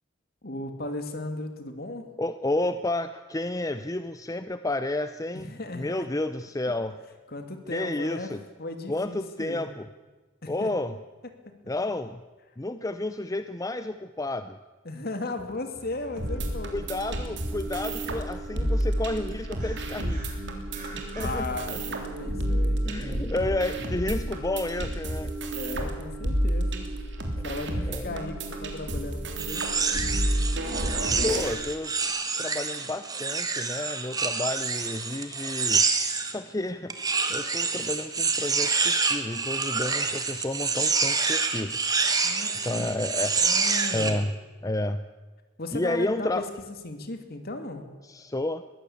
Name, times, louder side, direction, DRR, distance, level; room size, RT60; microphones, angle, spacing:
voice 1, 0.4-2.1 5.3-6.1 7.3-8.3 8.6-9.7 10.4-10.7 14.8-17.4 18.5-18.7 21.1-22.9 23.2-23.6 25.5-26.9 27.4-29.7 42.2-42.9 43.4-44.3 45.6-47.9, left 2 dB, 50° left, 7 dB, 2.6 m, -36 dB
voice 2, 2.2-5.5 5.7-7.0 7.7-8.4 8.9-9.9 10.5-10.9 11.7-12.2 12.6-14.6 16.7-20.2 21.2-21.8 22.8-25.3 27.4-27.5 27.9-28.1 30.8-31.9 32.4-35.9 36.3-37.0 37.3-41.8 42.6-43.3 43.9-44.3 44.6-45.0 45.7-46.5 48.0-48.6, left 2 dB, 15° left, 11 dB, 0.6 m, -31 dB
sound 1, 15.7-21.4, right 1 dB, 40° right, 6.0 m, -48 dB
sound 2, 16.2-31.5, right 1 dB, 60° right, 3.3 m, -30 dB
sound 3, 29.4-36.4 36.9-44.2, right 4 dB, 20° right, 1.8 m, -27 dB
22.0 x 15.5 x 8.6 m, 1.3 s
head